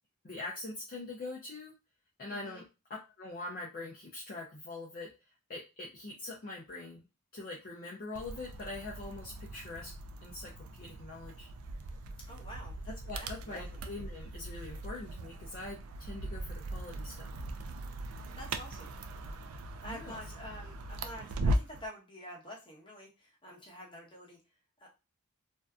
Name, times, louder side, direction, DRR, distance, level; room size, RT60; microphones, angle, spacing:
voice 1, 0.2-1.7 2.2-2.6 2.9-5.1 5.5-7.1 7.3-9.9 10.2-11.5 13.0-17.3 19.8-20.2, left 2 dB, 40° left, -3 dB, 0.5 m, -43 dB
voice 2, 2.3-2.6 12.3-13.8 18.3-19.0 19.8-24.4 24.8-24.9, equal, 20° left, -3 dB, 1.0 m, -48 dB
sound 1, 8.1-21.9, right 1 dB, 70° right, 0.3 m, -39 dB
2.6 x 2.2 x 2.3 m, 0.28 s
head